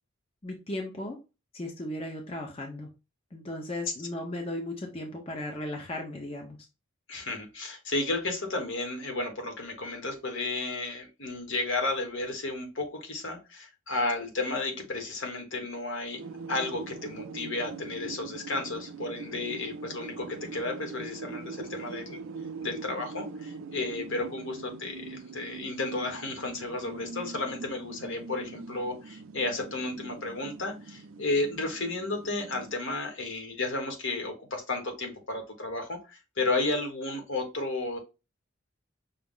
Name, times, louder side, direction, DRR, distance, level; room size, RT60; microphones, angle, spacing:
voice 1, 0.4-1.2 1.5-2.9 3.3-6.6, left 1 dB, 30° left, 1 dB, 0.6 m, -36 dB
voice 2, 7.1-16.2 16.5-22.2 22.6-38.0, left 2 dB, 75° left, 3 dB, 1.2 m, -33 dB
sound 1, 16.2-32.7, right 4 dB, 85° right, 0.4 m, -43 dB
5.6 x 2.0 x 3.7 m, 0.28 s
head